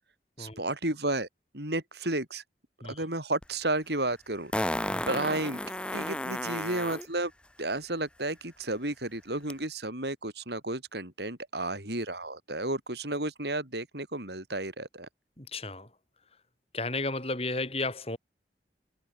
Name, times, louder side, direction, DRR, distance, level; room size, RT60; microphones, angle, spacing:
voice 1, 0.4-1.3 1.5-2.4 2.9-4.7 5.1-7.3 7.6-15.1, right 2 dB, 70° right, 7.4 m, -32 dB
Fart, 3.4-3.5 4.5-7.1 9.5-9.6, left 1 dB, 5° left, 1.1 m, -32 dB
voice 2, 15.4-15.9 16.7-18.2, left 2 dB, 35° left, 5.3 m, -33 dB
head